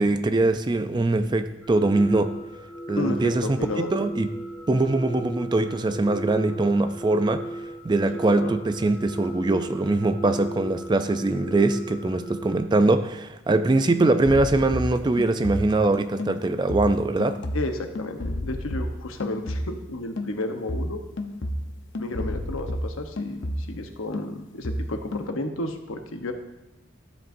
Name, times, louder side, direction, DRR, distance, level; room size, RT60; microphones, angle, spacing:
voice 1, 0.0-2.3 2.9-4.3 4.7-7.4 7.8-17.4, right 2 dB, 20° right, 9 dB, 0.4 m, -22 dB
sound 1, 1.6-12.6, right 1 dB, 10° left, 1.2 m, -37 dB
voice 2, 2.9-3.9 8.1-8.5 17.5-21.0 22.0-26.3, left 2 dB, 90° left, 5 dB, 0.9 m, -32 dB
sound 2, 14.2-19.9 20.2-23.9 24.1-25.3, left 1 dB, 70° left, 0.7 m, -32 dB
13.0 x 7.6 x 2.6 m, 0.95 s
head